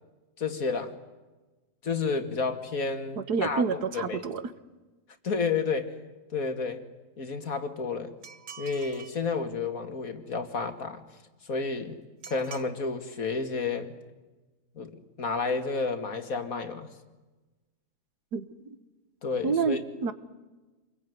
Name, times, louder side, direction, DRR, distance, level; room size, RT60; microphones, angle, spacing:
voice 1, 0.4-0.9 1.8-4.2 5.2-6.0 6.3-6.8 7.2-8.1 8.6-11.0 11.4-12.0 12.3-13.9 14.8-16.9 19.2-19.8, left 4 dB, 60° left, 8 dB, 2.4 m, -31 dB
voice 2, 3.2-4.4 18.3-18.5 19.4-20.1, right 5 dB, 90° right, 12 dB, 2.0 m, -28 dB
sound 1, 8.2-9.2 12.2-12.7, right 7 dB, 55° right, 1.5 m, -45 dB
28.0 x 22.0 x 9.5 m, 1.2 s
omnidirectional pair, 1.7 m